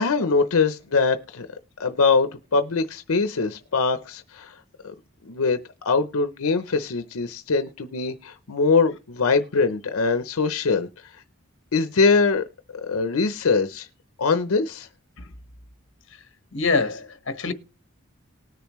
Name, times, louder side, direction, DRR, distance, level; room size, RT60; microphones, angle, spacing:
voice 1, 0.0-1.5 1.8-4.5 4.8-4.9 5.2-5.6 5.8-10.9 11.7-12.4 12.7-13.9 14.2-14.9, left 4 dB, 85° left, 0.7 m, -22 dB
voice 2, 16.5-17.5, left 4 dB, 60° left, 1.2 m, -25 dB
19.5 x 6.9 x 3.1 m
head